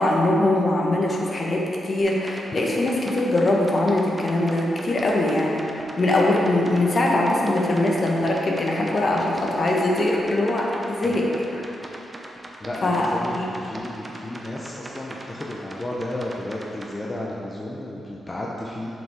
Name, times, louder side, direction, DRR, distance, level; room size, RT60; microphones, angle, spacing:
voice 1, 0.0-5.6 6.0-11.6 12.8-13.5, left 1 dB, 50° left, -2 dB, 1.2 m, -22 dB
sound 1, 2.0-16.9, right 1 dB, 35° right, 0.9 m, -40 dB
voice 2, 12.6-18.9, left 1 dB, 30° left, -4 dB, 0.8 m, -33 dB
7.3 x 5.5 x 3.7 m, 2.9 s
supercardioid pair, 50°, 0 cm